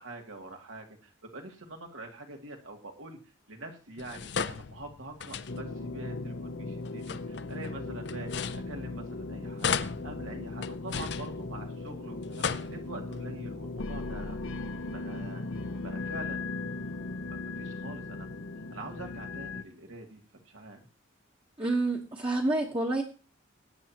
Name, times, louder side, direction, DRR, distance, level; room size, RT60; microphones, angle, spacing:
voice 1, 0.0-3.2 3.5-9.7 10.0-14.4 14.9-16.6 17.3-18.3 18.7-20.8, right 2 dB, 85° right, 2 dB, 2.5 m, -45 dB
sound 1, 4.0-5.9 6.8-9.2 9.6-11.9 12.2-13.2, left 6 dB, 55° left, 0.5 m, -36 dB
sound 2, 5.5-19.6, left 3 dB, 75° left, 0.9 m, -38 dB
voice 2, 21.6-23.0, right 2 dB, 25° right, -1 dB, 1.2 m, -28 dB
20.0 x 9.1 x 3.0 m, 0.35 s
head